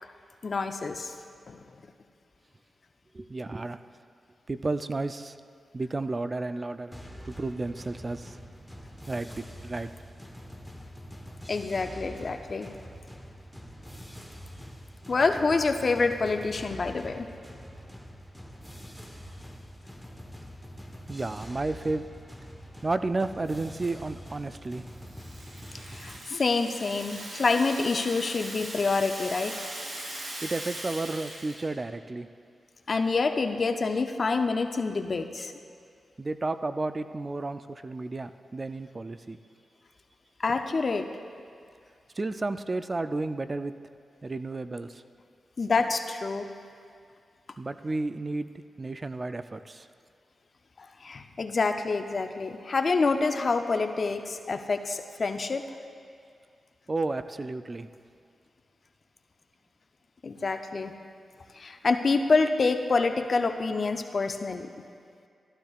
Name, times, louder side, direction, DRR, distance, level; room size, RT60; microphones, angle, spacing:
voice 1, 0.4-1.1 1.5-1.6 11.5-12.7 15.1-17.3 25.9-29.5 32.9-35.5 40.4-41.1 45.6-46.5 50.8-55.7 60.2-60.9 61.5-64.7, left 4 dB, 55° left, 7 dB, 0.6 m, -27 dB
voice 2, 3.1-3.8 4.5-5.4 5.7-7.0 7.2-8.4 9.1-9.9 21.1-22.1 22.8-24.9 30.4-32.3 36.2-39.4 42.2-43.7 44.2-45.0 47.6-48.5 48.8-49.9 56.9-57.9, right 2 dB, 40° right, 11 dB, 0.4 m, -32 dB
sound 1, 6.9-26.2, equal, ahead, 1.1 m, -45 dB
Rattle (instrument), 24.7-31.7, right 1 dB, 75° right, 2.8 m, -40 dB
13.0 x 12.0 x 2.4 m, 2.3 s
cardioid pair, 50°, 0 cm